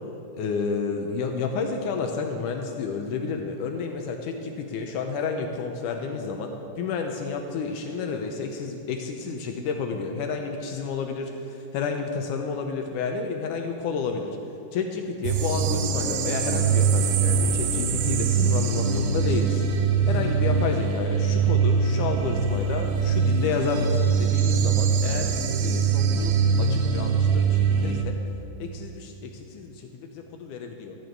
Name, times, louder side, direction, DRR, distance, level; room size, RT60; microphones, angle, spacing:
voice 1, 0.3-14.3 14.7-19.7 20.1-25.3 25.6-28.2 28.6-31.0, left 5 dB, 75° left, 4 dB, 1.9 m, -30 dB
sound 1, 15.2-28.0, right 6 dB, 80° right, 2.6 m, -23 dB
14.0 x 9.0 x 4.6 m, 2.8 s
omnidirectional pair, 4.2 m